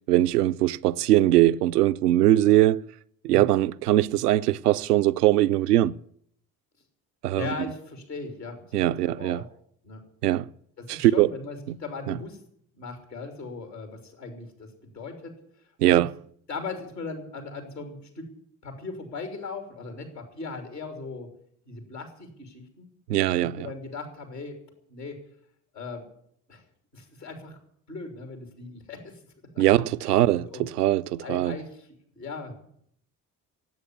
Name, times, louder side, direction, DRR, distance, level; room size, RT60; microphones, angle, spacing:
voice 1, 0.1-2.9 3.2-5.9 7.2-7.5 8.7-9.4 10.2-10.5 10.9-11.3 11.7-11.8 12.1-12.2 15.8-16.1 23.1-23.7 29.6-31.6, right 14 dB, 75° right, 0.6 m, -21 dB
voice 2, 7.3-9.5 9.8-10.0 10.8-12.4 12.7-15.4 15.8-16.0 16.5-18.3 18.6-21.3 21.7-22.9 23.4-24.6 24.9-25.2 25.7-26.0 26.5-26.6 26.9-27.6 27.9-29.2 29.5-29.6 30.0-30.2 30.4-30.6 31.2-31.9 32.1-32.5, left 4 dB, 85° left, 3.1 m, -38 dB
16.5 x 8.4 x 9.8 m
figure-of-eight pair, 45°, 47 cm